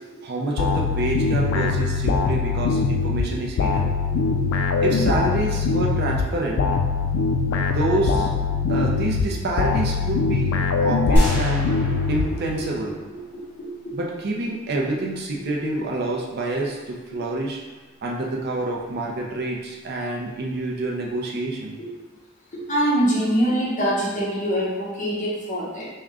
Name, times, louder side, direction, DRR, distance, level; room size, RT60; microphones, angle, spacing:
voice 1, 0.2-3.9 4.8-6.6 7.5-8.3 8.7-11.7 12.1-13.0 13.9-17.6 18.0-21.8, right 2 dB, 50° right, -1 dB, 0.5 m, -27 dB
sound 1, 0.6-12.8, left 4 dB, 75° left, 0.3 m, -23 dB
voice 2, 4.0-4.4 8.5-8.6 10.8-10.9 11.8-11.9 12.6-12.7 13.1-14.0 21.8-21.9 22.5-25.9, equal, 40° left, -6 dB, 0.9 m, -25 dB
sound 2, 11.1-14.0, equal, 10° left, 1.3 m, -26 dB
3.6 x 2.1 x 3.6 m, 1.3 s
head